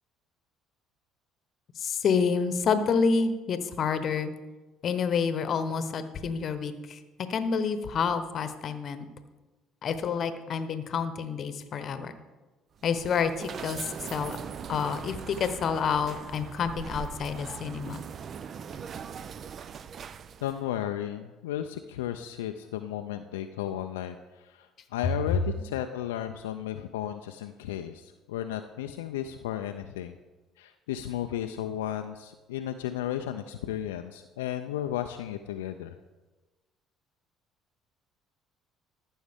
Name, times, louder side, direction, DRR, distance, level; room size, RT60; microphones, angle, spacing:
voice 1, 1.8-4.3 4.8-7.0 7.3-9.1 9.8-12.1 12.8-14.4 14.7-18.0, left 6 dB, 50° left, 11 dB, 0.9 m, -28 dB
sound 1, 12.8-20.6, right 7 dB, 50° right, 0.4 m, -40 dB
voice 2, 20.4-30.2 30.6-35.9, left 11 dB, 85° left, 6 dB, 0.3 m, -34 dB
14.0 x 6.3 x 3.5 m, 1.2 s
hypercardioid pair, 60°, 0 cm